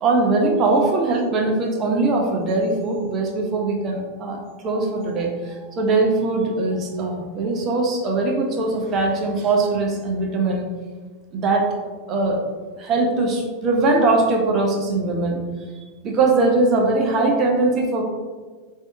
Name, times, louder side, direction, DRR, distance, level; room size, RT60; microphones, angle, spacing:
voice 1, 0.0-10.6 11.3-11.7 12.1-12.4 12.8-15.4 16.0-18.0, right 3 dB, 30° right, 0 dB, 0.5 m, -21 dB
3.4 x 2.6 x 2.5 m, 1.4 s
figure-of-eight pair, 90°, 0 cm